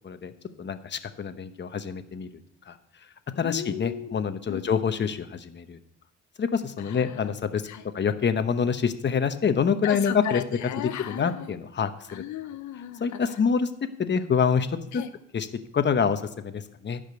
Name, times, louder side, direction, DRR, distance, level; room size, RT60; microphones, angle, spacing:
voice 1, 0.6-2.3 2.7-2.8 3.4-5.8 6.4-7.6 7.9-10.4 11.1-12.2 13.0-13.7 14.0-14.7 14.9-15.0 15.3-15.5 15.7-17.0, left 6 dB, 35° left, 9 dB, 1.0 m, -26 dB
voice 2, 3.4-4.2 4.5-4.6 6.8-7.3 7.7-7.8 9.8-11.5 12.1-13.2 14.9-15.1, left 11 dB, 70° left, 9 dB, 0.7 m, -35 dB
11.5 x 5.2 x 7.9 m, 0.78 s
cardioid pair, 90°, 30 cm